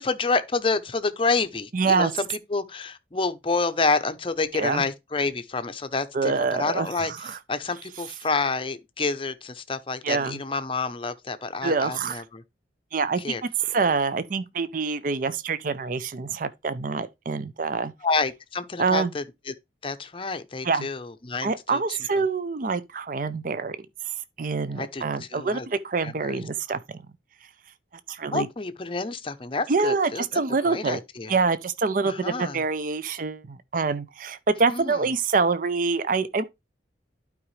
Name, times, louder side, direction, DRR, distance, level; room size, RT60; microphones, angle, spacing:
voice 1, 0.0-7.1 7.5-12.4 13.2-13.4 18.0-19.5 19.8-22.2 24.7-25.7 26.0-26.4 28.3-30.4 30.7-31.3 32.0-32.6 34.7-35.0, left 3 dB, 30° left, 0.6 m, -28 dB
voice 2, 1.7-2.1 4.5-4.8 6.1-7.4 10.0-10.4 11.6-12.2 12.9-17.9 18.8-19.1 20.6-20.9 21.4-23.8 24.0-27.0 28.1-28.5 29.7-31.0 31.3-36.4, right 4 dB, 45° right, 0.5 m, -26 dB
11.5 x 4.9 x 3.2 m
head